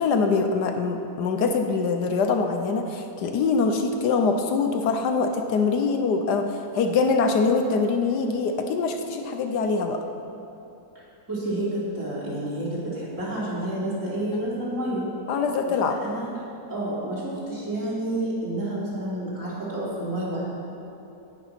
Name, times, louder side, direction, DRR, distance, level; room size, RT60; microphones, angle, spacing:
voice 1, 0.0-10.0 15.3-16.0, left 4 dB, 75° left, 5 dB, 1.3 m, -24 dB
voice 2, 11.0-15.1 16.0-16.3 16.7-20.5, right 1 dB, 45° right, -8 dB, 3.7 m, -29 dB
17.5 x 6.0 x 5.8 m, 2.9 s
omnidirectional pair, 1.9 m